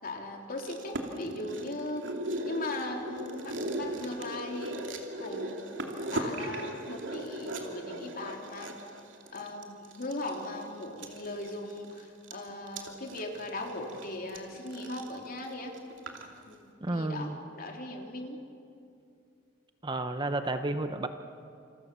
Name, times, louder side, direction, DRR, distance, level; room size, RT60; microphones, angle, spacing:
voice 1, 0.0-2.1 2.4-4.8 5.2-8.7 9.3-15.8 16.5-18.4, left 2 dB, 50° left, 2 dB, 3.4 m, -39 dB
sound 1, 0.6-16.3 16.5-16.6, right 1 dB, 80° right, 2.8 m, -38 dB
voice 2, 16.8-17.4 19.8-21.1, right 2 dB, 25° right, 8 dB, 0.9 m, -31 dB
28.0 x 27.0 x 6.9 m, 2.5 s
head